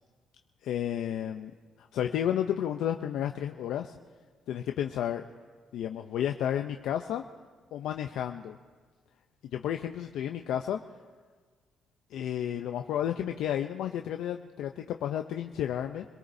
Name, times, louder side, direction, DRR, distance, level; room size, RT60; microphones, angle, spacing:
voice 1, 0.6-1.5 1.8-4.0 4.5-5.3 5.7-7.2 7.7-8.6 9.5-10.8 12.1-16.1, left 10 dB, 80° left, 5 dB, 0.6 m, -32 dB
26.5 x 18.0 x 2.7 m, 1.5 s
cardioid pair, 90°, 0 cm